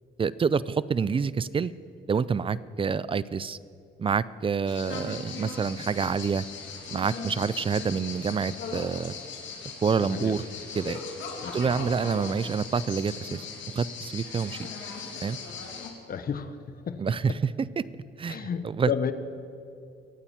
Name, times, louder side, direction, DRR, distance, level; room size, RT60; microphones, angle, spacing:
voice 1, 0.2-1.7 2.1-3.6 4.0-6.5 6.9-9.2 9.8-10.4 10.8-11.0 11.5-13.4 13.7-14.6 15.2-15.4 17.0-17.3 17.8-17.9 18.2-18.5 18.8-18.9, right 6 dB, 25° right, 18 dB, 0.4 m, -27 dB
sound 1, 4.7-15.9, left 5 dB, 75° left, 2.1 m, -39 dB
voice 2, 10.0-10.4 11.4-11.8 16.1-17.4 18.3-19.1, left 7 dB, 50° left, 11 dB, 1.0 m, -33 dB
24.0 x 8.8 x 4.3 m, 2.5 s
cardioid pair, 90°, 20 cm